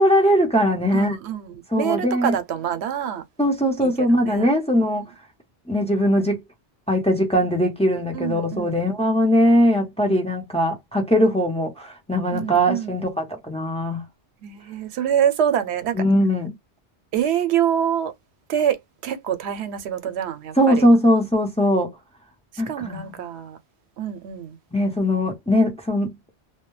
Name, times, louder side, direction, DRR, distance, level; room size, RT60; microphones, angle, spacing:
voice 1, 0.0-1.2 1.7-2.3 3.4-5.1 5.7-6.4 6.9-14.0 16.0-16.5 20.6-21.9 22.6-23.0 24.7-26.1, equal, 5° left, 0.7 m, -20 dB
voice 2, 0.9-3.2 3.8-4.5 8.1-8.9 12.3-13.1 14.4-16.0 17.1-18.1 18.5-20.9 22.7-23.6 24.0-24.6, right 9 dB, 85° right, 0.9 m, -26 dB
2.2 x 2.1 x 3.0 m
omnidirectional pair, 1.1 m